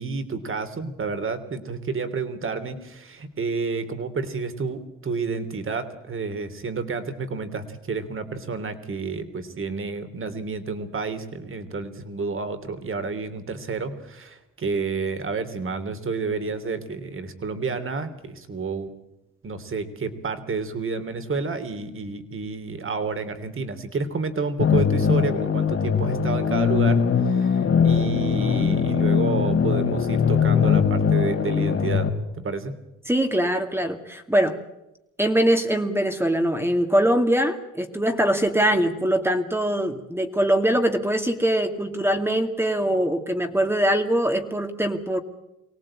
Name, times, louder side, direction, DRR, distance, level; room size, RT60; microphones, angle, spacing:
voice 1, 0.0-18.9 19.4-32.1 32.3-32.7, right 4 dB, 45° right, 10 dB, 3.3 m, -30 dB
sound 1, 24.6-32.1, left 6 dB, 50° left, 3.6 m, -21 dB
voice 2, 33.1-34.6 35.2-45.2, right 1 dB, 10° right, 5 dB, 2.3 m, -22 dB
24.5 x 18.0 x 8.8 m, 0.90 s
cardioid pair, 90°, 30 cm